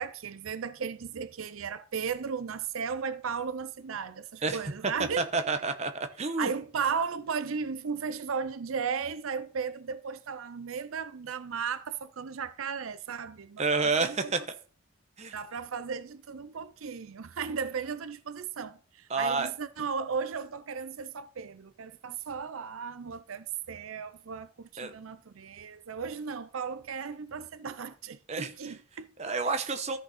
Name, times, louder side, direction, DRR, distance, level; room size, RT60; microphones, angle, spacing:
voice 1, 0.0-5.5 6.4-14.3 15.3-29.1 29.5-29.7, right 6 dB, 80° right, 0.6 m, -35 dB
voice 2, 5.2-6.5 13.6-14.4 15.2-15.3 19.1-19.5 24.8-24.9 28.3-28.5 29.2-30.0, right 4 dB, 30° right, 0.9 m, -29 dB
13.5 x 6.2 x 4.2 m
head